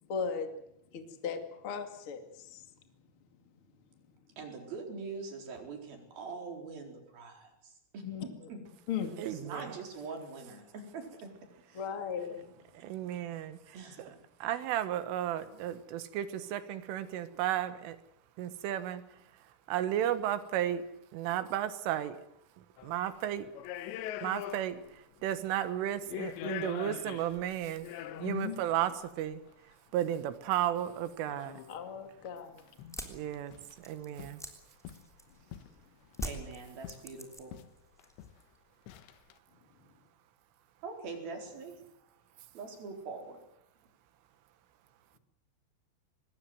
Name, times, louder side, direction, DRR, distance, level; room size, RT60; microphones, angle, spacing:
voice 1, 0.1-0.5 0.9-2.6 8.0-8.2 8.9-9.1 11.7-12.5 28.0-28.6 31.7-32.6, left 7 dB, 40° left, 6 dB, 2.2 m, -37 dB
voice 2, 4.4-8.6 9.2-11.8 13.7-14.1 36.2-37.6 40.8-41.8 42.5-43.4, right 4 dB, 50° right, 3 dB, 5.8 m, -43 dB
voice 3, 9.2-9.7 12.8-14.1 14.4-18.0 18.4-19.0 19.7-20.8 21.1-22.2 22.6-23.5 24.2-29.4 29.9-31.6 33.1-33.5 33.8-34.4, right 11 dB, 85° right, 12 dB, 4.0 m, -34 dB
sound 1, 22.8-23.0 23.5-25.0 25.2-25.3 25.9-28.5 29.5-29.6 31.3-31.8 32.3-32.4 32.6-33.1 33.3-33.8 34.2-34.4 34.8-35.8 36.2-37.1 37.5-37.7 38.0-38.4 38.9-39.3, left 12 dB, 75° left, 3.1 m, -43 dB
sound 2, 32.9-35.5 36.1-37.7 38.0-38.6, equal, ahead, 2.0 m, -43 dB
25.0 x 20.5 x 7.8 m, 0.78 s
omnidirectional pair, 5.6 m